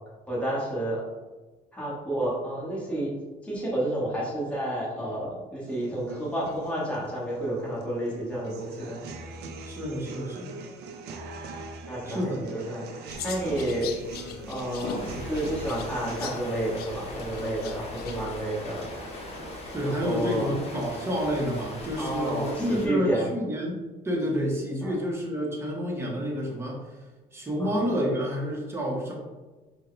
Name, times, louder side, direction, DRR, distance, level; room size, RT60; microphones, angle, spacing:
voice 1, 0.3-1.0 1.7-3.1 3.4-9.0 11.9-12.2 12.5-13.9 14.5-18.8 19.8-20.5 22.0-23.3 24.8-25.0 27.6-27.8, right 1 dB, 5° left, -7 dB, 1.3 m, -30 dB
sound 1, 5.6-21.6, right 3 dB, 75° right, 0.5 m, -43 dB
voice 2, 9.6-10.6 12.0-12.4 19.7-26.9 27.3-29.1, equal, 15° right, -2 dB, 0.9 m, -29 dB
sound 2, 13.1-18.4, left 5 dB, 70° left, 0.4 m, -40 dB
Rain, 14.9-22.9, left 1 dB, 35° left, 0.9 m, -40 dB
4.4 x 2.2 x 3.2 m, 1.2 s
cardioid pair, 110°, 17 cm